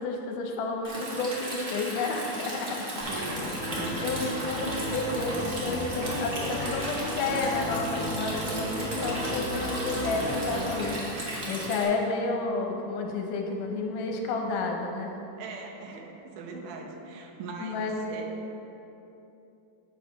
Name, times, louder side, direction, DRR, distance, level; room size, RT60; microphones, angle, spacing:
voice 1, 0.0-2.9 4.0-11.1 11.5-15.2 17.6-18.2, left 3 dB, 80° left, 2 dB, 2.4 m, -31 dB
Stream, 0.8-11.8, right 1 dB, 60° right, 0.7 m, -36 dB
sound 1, 3.0-10.9, equal, 35° left, 2.0 m, -34 dB
voice 2, 3.0-4.0 15.4-18.3, right 3 dB, 80° right, 1 dB, 2.4 m, -40 dB
8.3 x 4.8 x 5.6 m, 2.9 s
omnidirectional pair, 3.7 m